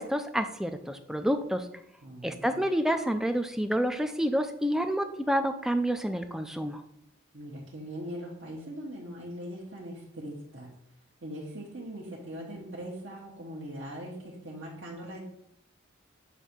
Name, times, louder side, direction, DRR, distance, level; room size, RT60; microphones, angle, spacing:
voice 1, 0.0-1.7 2.2-6.8, equal, ahead, 8 dB, 0.4 m, -28 dB
voice 2, 2.0-2.6 7.3-10.7 11.2-15.2, equal, 60° right, -5 dB, 1.1 m, -41 dB
8.1 x 2.7 x 6.0 m, 0.76 s
head